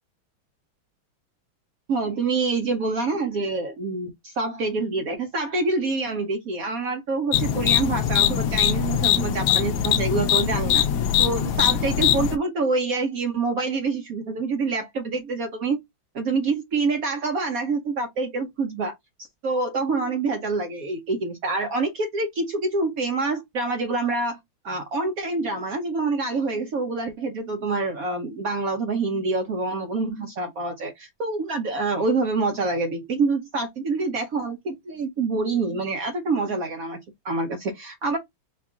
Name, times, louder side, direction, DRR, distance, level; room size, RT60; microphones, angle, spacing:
voice 1, 1.9-10.8 11.2-15.8 16.1-18.9 19.4-24.4 24.6-37.0 37.2-38.2, right 3 dB, 75° right, 0.8 m, -26 dB
sound 1, 7.3-12.4, left 10 dB, 75° left, 1.0 m, -22 dB
4.6 x 2.3 x 3.6 m
omnidirectional pair, 2.4 m